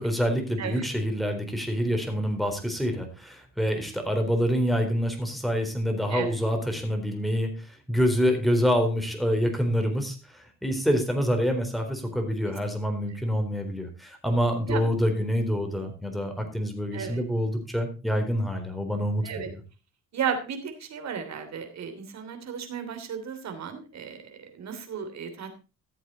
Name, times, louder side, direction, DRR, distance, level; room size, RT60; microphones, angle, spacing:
voice 1, 0.0-19.6, equal, ahead, 4 dB, 3.9 m, -26 dB
voice 2, 20.1-25.5, right 7 dB, 60° right, 7 dB, 3.1 m, -34 dB
14.0 x 8.1 x 4.0 m, 0.31 s
cardioid pair, 90°, 30 cm